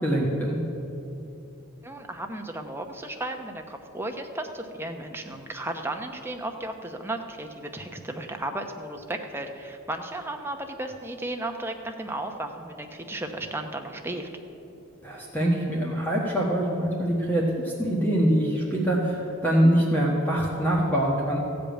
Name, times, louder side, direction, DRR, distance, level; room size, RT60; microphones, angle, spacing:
voice 1, 0.0-0.6 15.0-21.4, right 1 dB, 10° left, -4 dB, 1.3 m, -24 dB
voice 2, 1.8-14.3, right 1 dB, 10° right, 4 dB, 0.8 m, -34 dB
15.0 x 5.2 x 8.9 m, 2.9 s
head